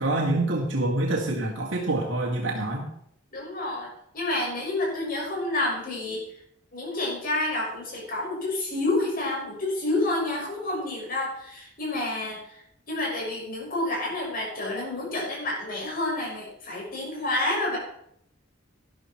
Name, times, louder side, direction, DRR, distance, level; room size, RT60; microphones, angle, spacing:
voice 1, 0.0-2.9, right 2 dB, 90° right, -2 dB, 2.1 m, -26 dB
voice 2, 3.3-6.2 6.7-12.6 12.9-17.8, left 2 dB, 50° left, -2 dB, 6.4 m, -29 dB
12.0 x 11.5 x 4.5 m, 0.70 s
head